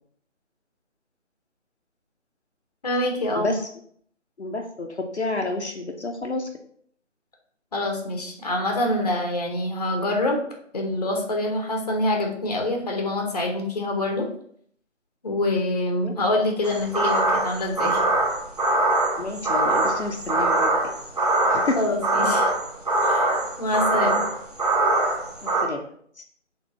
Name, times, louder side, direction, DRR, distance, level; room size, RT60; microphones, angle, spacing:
voice 1, 2.8-3.5 7.7-10.4 10.7-14.3 15.2-18.0 21.8-22.5 23.0-23.3 23.6-24.2, left 1 dB, 30° left, 1 dB, 1.1 m, -25 dB
voice 2, 3.4-3.7 4.4-6.5 16.0-16.1 19.2-20.9 21.5-21.8 25.4-25.8 26.2-26.3, left 2 dB, 60° left, 2 dB, 0.9 m, -29 dB
sound 1, 16.6-25.6, right 2 dB, 30° right, 0.8 m, -23 dB
4.5 x 3.9 x 5.4 m, 0.63 s
figure-of-eight pair, 155°, 37 cm